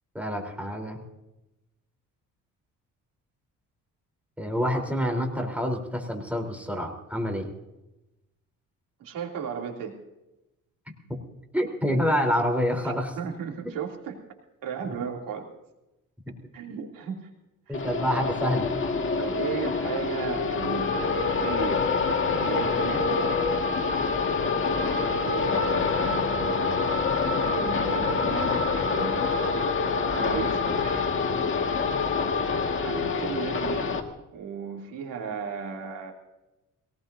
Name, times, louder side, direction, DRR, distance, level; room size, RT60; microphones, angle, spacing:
voice 1, 0.1-1.0 4.4-7.5 11.5-13.1 14.8-14.9 16.3-16.4 17.7-18.7, equal, 5° right, 2 dB, 3.7 m, -27 dB
voice 2, 9.0-10.0 12.8-14.2 14.6-15.5 16.5-17.3 17.7-17.8 19.1-21.9 22.3-23.3 25.1-26.8 27.4-29.3 30.1-31.4 32.3-34.1 34.3-36.1, right 6 dB, 80° right, 1 dB, 3.0 m, -35 dB
sound 1, 17.7-34.0, left 4 dB, 35° left, 1.9 m, -26 dB
22.5 x 18.5 x 2.7 m, 0.95 s
cardioid pair, 110°, 33 cm